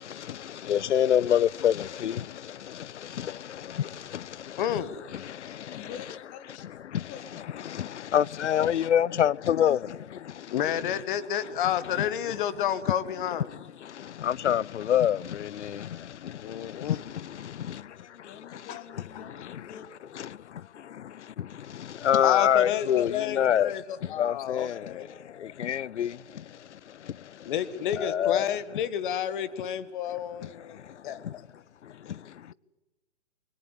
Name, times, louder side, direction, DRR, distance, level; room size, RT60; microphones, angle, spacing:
voice 1, 0.0-4.8 5.1-5.9 6.9-7.1 7.6-10.0 10.3-10.5 10.8-10.9 12.3-12.4 13.5-18.7 19.2-19.6 20.1-27.5 27.9-28.5 30.4-31.3 31.8-32.5, left 10 dB, 75° left, 0.7 m, -28 dB
voice 2, 4.6-4.9 5.5-5.6 10.5-13.5 16.4-17.0 18.7-18.8 22.2-25.1 27.5-30.8 31.0-31.4, left 10 dB, 45° left, 1.7 m, -30 dB
voice 3, 5.7-6.7 7.1-7.6 17.9-20.2, left 8 dB, 20° left, 2.0 m, -47 dB
23.0 x 20.0 x 8.5 m
hypercardioid pair, 140°, 35 cm